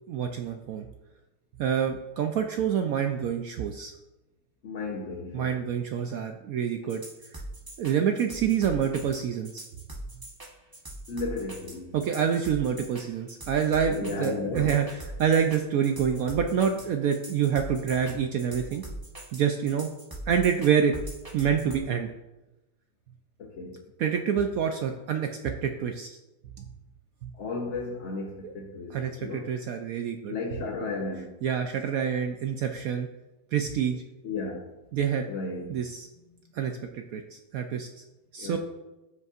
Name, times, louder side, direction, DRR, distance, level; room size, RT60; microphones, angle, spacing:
voice 1, 0.1-0.9 1.6-3.9 5.3-7.0 7.8-9.7 11.9-18.8 19.3-19.9 20.3-20.9 21.3-22.1 24.0-25.3 25.6-26.1 26.6-26.7 27.2-27.3 28.4-28.5 28.9-30.3 31.4-33.1 33.5-34.0 34.9-35.3 35.7-36.1 36.5-38.0 38.3-38.6, right 8 dB, 75° right, 0.8 m, -27 dB
voice 2, 4.6-5.6 11.1-11.9 13.9-14.8 23.4-23.8 27.4-29.5 30.3-31.3 34.2-34.7 35.3-35.8 38.4-38.6, left 3 dB, 50° left, 0.9 m, -34 dB
sound 1, 6.9-21.8, right 1 dB, 20° right, 0.6 m, -42 dB
13.0 x 5.3 x 2.4 m
omnidirectional pair, 2.0 m